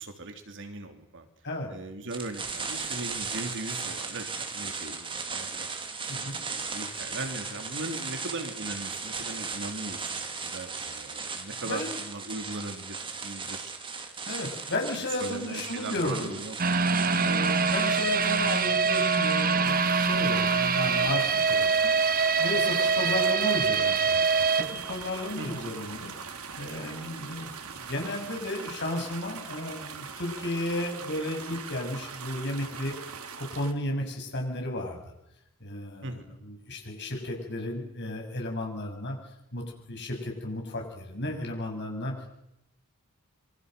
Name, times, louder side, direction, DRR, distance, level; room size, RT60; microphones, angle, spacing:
voice 1, 0.0-1.3 1.7-5.7 6.1-14.2 15.2-16.9 22.9-23.1 25.4-25.6 36.0-36.3, right 2 dB, 60° right, 6 dB, 2.9 m, -39 dB
sound 1, 2.1-19.8, right 4 dB, 25° right, 2.4 m, -37 dB
voice 2, 11.7-12.0 14.3-16.4 17.1-26.1 26.6-32.9 33.4-35.0 35.6-39.2 39.5-42.4, left 1 dB, 55° left, 2 dB, 7.1 m, -34 dB
sound 2, 16.6-25.6 25.9-26.0 26.5-26.6, right 5 dB, 40° right, 1.1 m, -24 dB
sound 3, 19.6-33.7, right 6 dB, 85° right, 2.4 m, -41 dB
27.0 x 24.0 x 6.7 m, 0.84 s
head